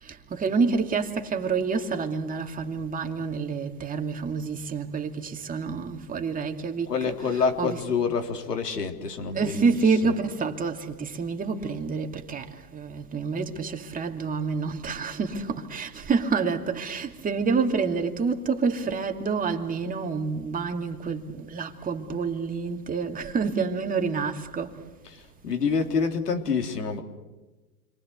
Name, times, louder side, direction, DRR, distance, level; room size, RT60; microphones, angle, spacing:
voice 1, 0.0-7.8 9.3-24.8, right 5 dB, 20° right, 2.5 m, -28 dB
voice 2, 6.9-10.2 25.0-27.0, left 5 dB, 85° left, 3.5 m, -27 dB
29.5 x 23.5 x 8.2 m
hypercardioid pair, 110°, 46 cm